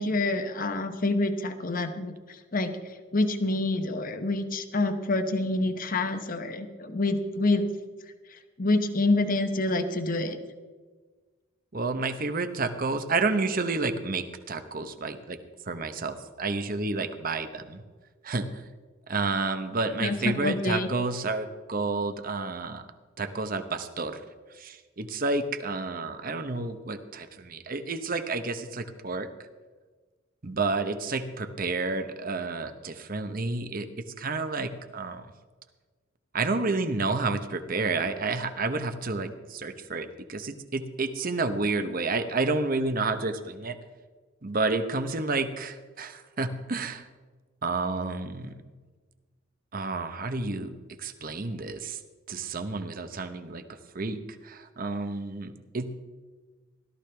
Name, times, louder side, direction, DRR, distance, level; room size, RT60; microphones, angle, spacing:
voice 1, 0.0-2.1 2.5-2.7 3.1-7.6 8.6-10.4 20.0-20.9, left 2 dB, 45° left, 8 dB, 1.0 m, -27 dB
voice 2, 11.7-15.4 15.7-17.8 18.2-18.5 19.1-22.8 23.2-24.2 24.6-29.3 30.4-33.9 34.2-35.3 36.3-43.8 44.4-47.0 47.6-48.6 49.7-50.7 51.0-52.0 52.3-53.6 53.9-55.9, right 3 dB, 45° right, 9 dB, 0.9 m, -30 dB
17.0 x 13.5 x 3.4 m, 1.4 s
head